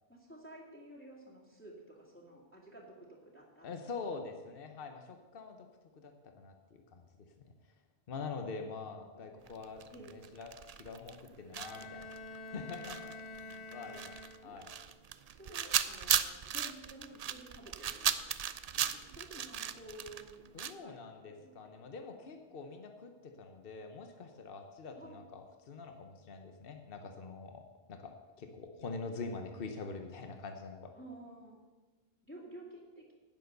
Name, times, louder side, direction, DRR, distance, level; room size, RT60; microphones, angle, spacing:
voice 1, 0.1-3.7 9.1-9.5 9.9-10.2 13.7-13.9 14.4-14.6 15.3-18.2 18.7-20.4 20.7-21.0 21.3-22.1 22.5-22.6 25.0-25.2 30.9-31.6 32.3-33.1, right 1 dB, 10° left, -5 dB, 2.2 m, -52 dB
voice 2, 3.6-5.6 6.0-6.5 6.9-7.1 7.4-7.5 8.1-9.8 10.1-10.5 10.8-12.0 12.3-14.2 14.4-14.7 20.5-30.9, left 4 dB, 65° left, 5 dB, 1.1 m, -45 dB
sound 1, 9.5-11.3 11.5-20.7, right 8 dB, 50° right, 0.5 m, -36 dB
Bowed string instrument, 11.5-14.7, left 3 dB, 40° left, 1.7 m, -48 dB
10.5 x 9.3 x 6.7 m, 1.3 s
omnidirectional pair, 1.0 m